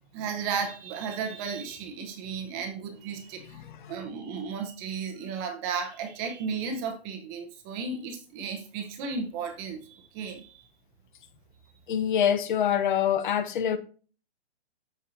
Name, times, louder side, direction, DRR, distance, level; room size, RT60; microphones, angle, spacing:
voice 1, 0.1-3.6 3.9-10.6, right 5 dB, 20° right, 0.8 m, -34 dB
voice 2, 3.5-3.9 11.9-13.8, left 9 dB, 45° left, 0.8 m, -25 dB
13.0 x 4.6 x 2.7 m
hypercardioid pair, 160°, 33 cm